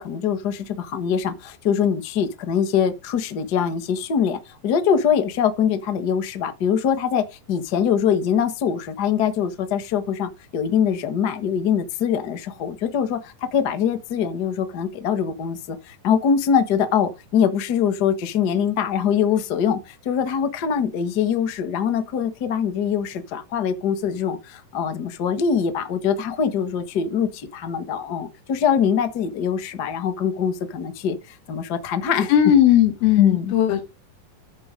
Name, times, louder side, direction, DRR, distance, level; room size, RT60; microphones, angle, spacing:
voice 1, 0.0-32.3 33.2-33.5, left 7 dB, 60° left, 1.0 m, -23 dB
voice 2, 32.3-33.8, left 10 dB, 90° left, 3.7 m, -17 dB
14.0 x 4.7 x 5.1 m
omnidirectional pair, 4.1 m